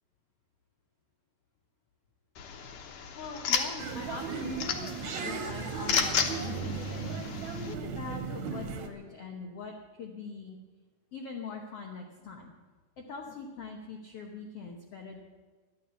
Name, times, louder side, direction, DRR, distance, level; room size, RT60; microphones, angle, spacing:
sound 1, 2.4-7.7, left 6 dB, 65° left, 2.3 m, -34 dB
voice 1, 3.1-4.6 5.2-10.6 11.1-12.5 13.0-15.2, left 4 dB, 90° left, 1 dB, 1.3 m, -42 dB
sound 2, 3.8-8.9, right 5 dB, 60° right, 2.3 m, -36 dB
14.0 x 11.5 x 7.0 m, 1.4 s
omnidirectional pair, 4.5 m